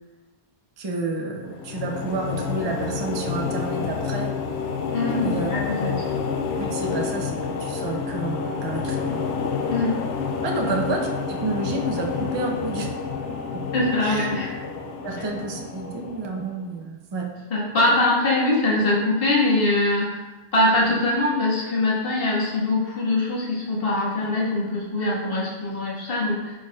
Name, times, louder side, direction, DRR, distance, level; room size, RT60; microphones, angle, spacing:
voice 1, 0.8-4.3 5.2-5.5 6.6-9.3 10.4-12.9 13.5-13.6 14.0-14.3 15.0-17.3, right 3 dB, 30° right, 1 dB, 0.6 m, -30 dB
sound 1, 1.4-16.7, left 5 dB, 75° left, 0.9 m, -29 dB
voice 2, 4.9-5.9 9.7-9.9 13.7-14.5 17.5-20.1 20.5-26.5, left 2 dB, 55° left, -7 dB, 1.8 m, -22 dB
11.0 x 4.8 x 2.4 m, 1.2 s
omnidirectional pair, 1.2 m